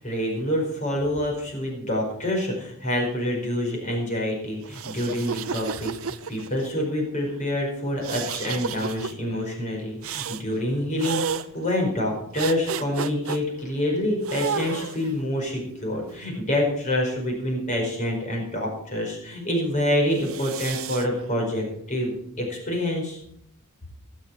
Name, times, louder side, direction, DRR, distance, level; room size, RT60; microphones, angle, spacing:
voice 1, 0.0-11.2 11.5-23.2, left 1 dB, 35° left, 0 dB, 4.9 m, -27 dB
sound 1, 4.6-6.7 8.0-9.1 10.0-10.4 11.0-11.5 12.4-13.4 14.2-15.1 15.9-17.1 20.1-21.1, right 6 dB, 75° right, 0.7 m, -32 dB
22.0 x 7.5 x 4.8 m, 0.74 s
head